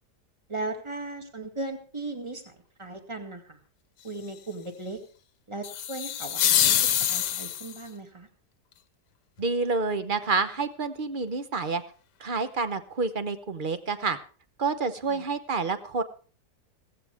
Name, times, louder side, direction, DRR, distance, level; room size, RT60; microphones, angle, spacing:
voice 1, 0.5-3.6 4.0-5.0 5.5-6.4 6.7-8.3 15.1-15.3, right 2 dB, 15° right, 5 dB, 2.0 m, -37 dB
sound 1, 5.6-7.8, left 10 dB, 85° left, 1.4 m, -25 dB
voice 2, 9.4-11.8 12.2-14.2 14.6-16.0, right 4 dB, 40° right, 11 dB, 0.9 m, -28 dB
16.5 x 15.0 x 3.5 m, 0.39 s
omnidirectional pair, 1.8 m